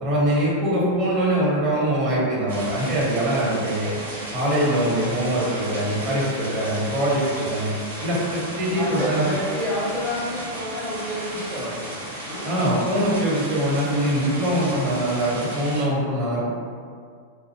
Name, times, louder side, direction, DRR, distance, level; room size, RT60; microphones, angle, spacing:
voice 1, 0.0-3.9 4.3-7.7 8.0-9.2 12.4-16.5, right 1 dB, 30° right, -6 dB, 0.8 m, -23 dB
sound 1, 2.5-15.8, right 1 dB, 65° right, 0.6 m, -34 dB
voice 2, 8.8-11.9 12.2-12.5, equal, 5° left, -10 dB, 0.6 m, -29 dB
2.4 x 2.0 x 2.9 m, 2.1 s
figure-of-eight pair, 90°, 0 cm